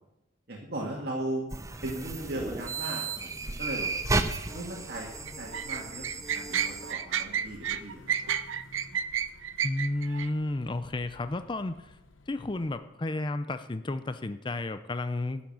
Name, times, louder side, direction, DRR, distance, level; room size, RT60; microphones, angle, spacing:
voice 1, 0.5-1.5 1.8-3.9 4.5-8.0, right 1 dB, 55° right, -2 dB, 2.0 m, -37 dB
sound 1, 1.5-6.9, right 3 dB, 15° right, 0.6 m, -34 dB
sound 2, 3.7-12.8, left 2 dB, 85° left, 1.2 m, -53 dB
sound 3, 5.3-10.3, right 9 dB, 85° right, 0.7 m, -31 dB
voice 2, 9.6-11.9 12.3-15.4, left 2 dB, 25° left, 11 dB, 0.5 m, -32 dB
12.0 x 7.3 x 8.7 m, 0.90 s
head